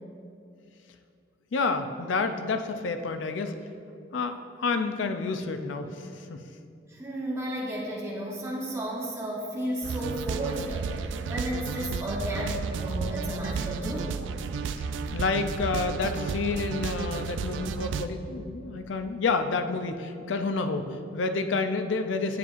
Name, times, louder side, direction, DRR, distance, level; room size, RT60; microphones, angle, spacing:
voice 1, 1.5-3.5 4.1-6.5 15.1-22.4, left 4 dB, 85° left, 8 dB, 0.4 m, -29 dB
voice 2, 6.9-14.2, equal, 15° right, -6 dB, 1.1 m, -33 dB
sound 1, 9.8-18.1, right 5 dB, 80° right, 0.3 m, -32 dB
9.3 x 7.2 x 2.5 m, 2.4 s
head